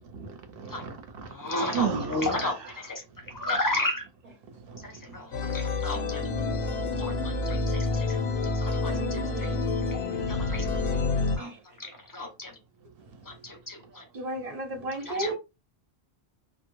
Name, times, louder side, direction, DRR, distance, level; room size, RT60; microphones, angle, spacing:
voice 1, 0.1-2.9 3.3-3.5 4.5-5.1 6.7-7.1 7.4-7.5 9.1-9.2 9.7-9.8 10.8-11.0, right 6 dB, 65° right, 0.8 m, -35 dB
voice 2, 1.3-3.0 3.3-4.1 5.1-5.2 5.5-6.2 7.0-8.1 8.6-9.5 9.9-10.0 10.3-10.7 11.4-11.5 11.8-12.5 13.4-14.0 15.1-15.3, left 2 dB, 30° left, 0.4 m, -33 dB
sound 1, 5.3-11.4, left 3 dB, 75° left, 0.9 m, -28 dB
voice 3, 6.0-7.8 8.7-9.6 11.4-11.6 14.1-15.3, right 1 dB, 40° right, 0.8 m, -37 dB
2.1 x 2.1 x 3.0 m
omnidirectional pair, 1.1 m